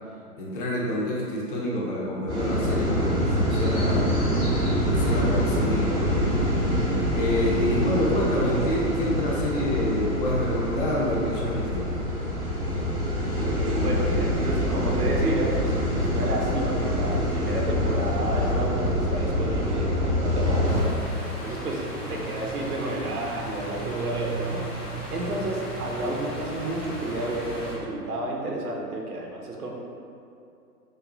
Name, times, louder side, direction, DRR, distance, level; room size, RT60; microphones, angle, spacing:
voice 1, 0.4-4.1 4.8-6.1 7.1-12.3, left 1 dB, 35° left, -4 dB, 0.7 m, -28 dB
sound 1, 2.3-20.8, equal, ahead, 0.3 m, -25 dB
voice 2, 13.4-21.0 21.4-24.6 25.1-29.7, right 2 dB, 70° right, -1 dB, 0.9 m, -31 dB
sound 2, 20.7-27.8, right 1 dB, 80° left, 1.4 m, -35 dB
6.4 x 2.3 x 2.6 m, 2.7 s
figure-of-eight pair, 115°, 47 cm